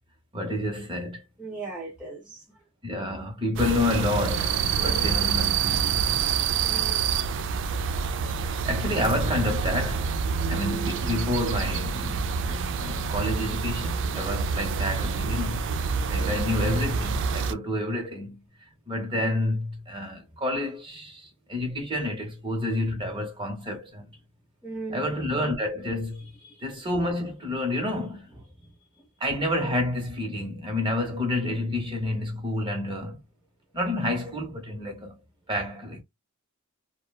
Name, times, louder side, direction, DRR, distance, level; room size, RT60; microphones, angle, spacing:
voice 1, 0.3-1.2 2.8-6.3 8.6-10.1 10.5-15.7 16.1-18.4 18.9-24.1 24.9-26.3 26.6-28.3 29.2-33.2 33.7-35.2 35.5-36.0, left 1 dB, 20° right, 0.9 m, -29 dB
voice 2, 1.4-2.6 4.8-5.1 6.6-7.1 16.2-16.4 24.6-25.1 26.1-26.6 28.6-28.7 29.0-29.1, right 3 dB, 5° right, 0.6 m, -38 dB
sound 1, 3.6-17.5, right 6 dB, 55° right, 0.3 m, -27 dB
2.9 x 2.2 x 2.2 m
head